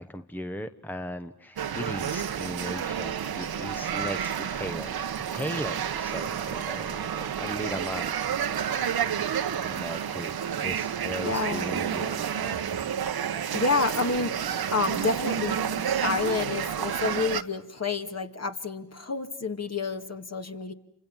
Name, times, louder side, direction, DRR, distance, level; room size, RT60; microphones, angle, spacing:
voice 1, 0.0-8.1 9.6-12.2, equal, 5° left, 10 dB, 1.1 m, -37 dB
sound 1, 1.6-17.4, right 8 dB, 60° right, 1.3 m, -30 dB
voice 2, 11.2-11.8 13.5-20.7, left 4 dB, 35° left, 6 dB, 2.4 m, -29 dB
28.5 x 25.5 x 7.4 m, 0.69 s
supercardioid pair, 50°, 42 cm